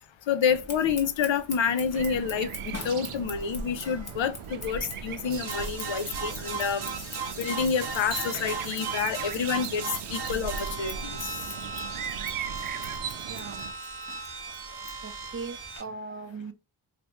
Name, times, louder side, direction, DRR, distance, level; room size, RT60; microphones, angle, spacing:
voice 1, 0.3-2.5 2.8-6.8 7.4-11.3, left 7 dB, 65° left, 0.6 m, -28 dB
Scissors, 0.5-15.8, left 2 dB, 30° left, 1.0 m, -44 dB
sound 1, 1.9-13.7, right 7 dB, 80° right, 0.6 m, -39 dB
sound 2, 5.3-15.8, right 5 dB, 50° right, 0.8 m, -37 dB
voice 2, 13.3-13.7 15.0-16.5, right 4 dB, 25° right, 0.5 m, -39 dB
3.2 x 2.5 x 2.9 m
cardioid pair, 65°, 50 cm